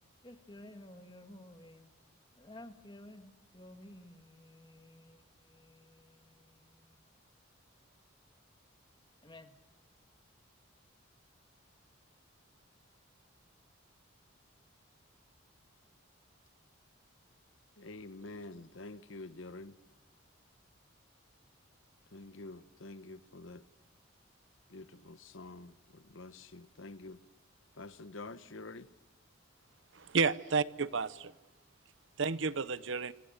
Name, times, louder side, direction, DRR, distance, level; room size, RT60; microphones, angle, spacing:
voice 1, 0.2-1.9 2.4-7.2 9.2-9.6, left 1 dB, 20° left, 1.7 m, -54 dB
voice 2, 17.8-19.8 22.1-23.6 24.7-27.2 27.8-28.9, left 2 dB, 65° left, 0.9 m, -48 dB
voice 3, 29.9-31.3 32.2-33.1, right 5 dB, 65° right, 0.8 m, -31 dB
27.5 x 26.0 x 6.7 m
head